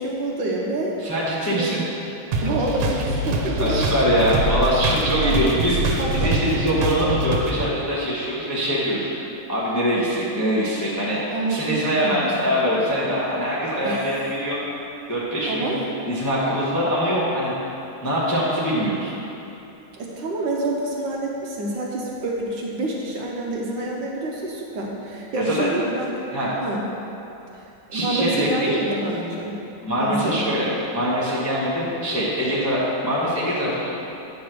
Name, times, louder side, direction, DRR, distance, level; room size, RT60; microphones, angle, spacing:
voice 1, 0.0-1.0 1.5-1.7 2.4-3.9 4.2-4.3 5.2-5.5 6.0-6.4 11.3-11.7 12.0-12.4 13.8-14.2 15.5-15.8 20.0-26.1 26.6-26.8 27.5-29.6 30.0-30.6, right 2 dB, 65° right, -2 dB, 1.3 m, -27 dB
voice 2, 1.0-1.8 3.6-9.1 9.5-11.2 11.5-14.6 15.1-15.8 16.1-17.5 18.0-19.1 25.3-25.7 26.3-26.5 27.9-28.7 29.8-30.7 30.9-33.9, equal, 15° left, -8 dB, 0.5 m, -23 dB
sound 1, 2.3-7.7, right 1 dB, 85° right, 1.6 m, -24 dB
9.2 x 3.3 x 6.0 m, 2.9 s
omnidirectional pair, 2.4 m